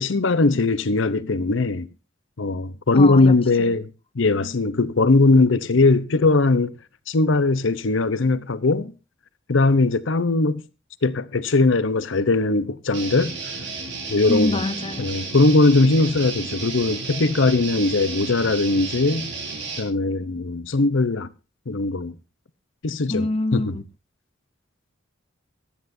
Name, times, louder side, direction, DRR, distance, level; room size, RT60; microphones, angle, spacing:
voice 1, 0.0-1.9 2.4-3.9 4.1-6.7 7.1-8.9 9.5-10.6 11.0-13.3 14.1-14.6 15.0-19.3 19.8-21.3 21.7-22.1 22.8-23.3 23.5-23.8, left 3 dB, 70° left, 0.8 m, -20 dB
voice 2, 2.9-3.8 14.3-15.2 23.1-23.8, left 2 dB, 30° left, 0.8 m, -26 dB
Guitar, 12.9-19.8, right 4 dB, 60° right, 5.0 m, -32 dB
17.5 x 13.0 x 2.7 m
head